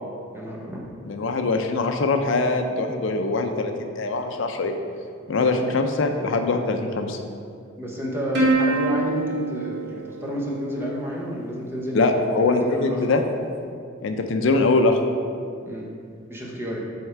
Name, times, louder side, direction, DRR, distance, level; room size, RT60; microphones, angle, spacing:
voice 1, 0.3-0.8 7.8-12.1 12.4-13.0 15.6-15.9 16.3-16.8, equal, 10° right, -3 dB, 0.9 m, -30 dB
voice 2, 1.1-4.7 5.3-7.2 11.9-13.2 14.0-15.0, left 3 dB, 65° left, 5 dB, 0.5 m, -22 dB
Plucked string instrument, 8.3-11.1, right 2 dB, 55° right, 1.3 m, -25 dB
7.9 x 3.6 x 4.5 m, 2.3 s
head